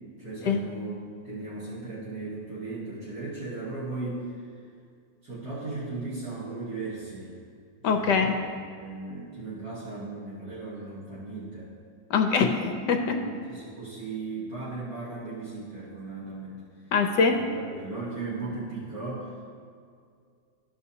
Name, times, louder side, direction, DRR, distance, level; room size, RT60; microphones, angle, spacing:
voice 1, 0.2-1.0 1.2-4.3 5.2-7.3 7.8-11.7 12.4-12.6 13.0-16.6 17.3-19.3, right 3 dB, 50° right, -9 dB, 1.9 m, -37 dB
voice 2, 7.8-8.4 12.1-13.2 16.9-17.4, left 5 dB, 70° left, 5 dB, 1.1 m, -23 dB
13.5 x 5.5 x 2.8 m, 2.3 s
omnidirectional pair, 2.1 m